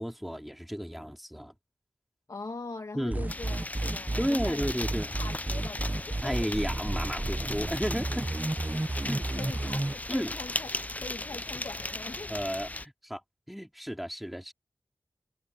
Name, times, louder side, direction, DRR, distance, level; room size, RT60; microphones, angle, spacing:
voice 1, 0.0-1.5 2.9-3.3 4.2-5.1 6.2-8.3 9.1-9.3 10.1-10.3 12.3-13.2 13.5-14.5, equal, ahead, 3.3 m, -33 dB
voice 2, 2.3-4.8 5.2-6.5 8.7-10.7 11.0-12.3, left 3 dB, 60° left, 1.5 m, -42 dB
sound 1, 3.1-9.9, right 2 dB, 25° right, 0.9 m, -31 dB
sound 2, 3.3-12.9, left 2 dB, 25° left, 0.5 m, -37 dB
wide cardioid pair, 55°, 7 cm